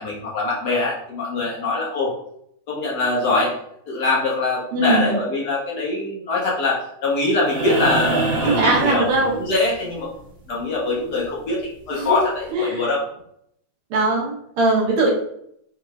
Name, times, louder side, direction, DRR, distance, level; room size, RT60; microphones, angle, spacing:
voice 1, 0.0-2.1 2.7-3.5 3.9-10.1 10.5-11.6 11.9-13.0, left 2 dB, 60° left, -3 dB, 1.3 m, -23 dB
voice 2, 4.7-5.2 8.4-9.4 11.9-12.2 12.5-12.8 13.9-15.1, right 2 dB, 85° right, -2 dB, 1.9 m, -20 dB
sound 1, 7.4-9.7 11.6-11.7, right 2 dB, 55° right, 0.8 m, -25 dB
5.0 x 3.3 x 2.3 m, 0.72 s
omnidirectional pair, 2.2 m